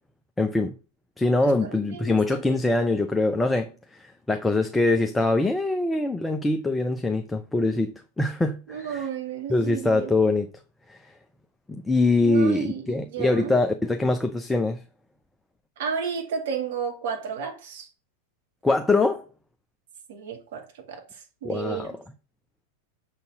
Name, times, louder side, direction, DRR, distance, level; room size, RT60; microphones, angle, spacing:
voice 1, 0.4-0.8 1.2-9.0 9.5-10.5 10.9-11.0 11.7-14.8 18.6-19.2 21.4-22.0, left 2 dB, 10° left, 0.6 m, -23 dB
voice 2, 1.4-2.4 8.7-10.1 12.2-13.6 15.8-17.9 20.1-21.9, right 7 dB, 55° right, 2.0 m, -33 dB
6.8 x 4.1 x 6.6 m
figure-of-eight pair, 90°, 0 cm